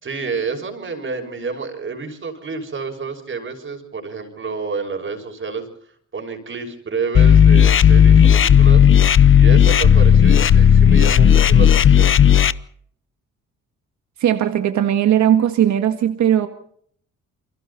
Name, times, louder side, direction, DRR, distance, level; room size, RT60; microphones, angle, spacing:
voice 1, 0.0-5.7 6.1-8.9 9.3-12.2, right 4 dB, 40° right, 6.1 m, -29 dB
sound 1, 7.1-12.5, left 8 dB, 45° left, 0.9 m, -12 dB
voice 2, 14.2-16.5, right 10 dB, 70° right, 1.8 m, -17 dB
29.0 x 23.0 x 4.2 m
cardioid pair, 90°, 30 cm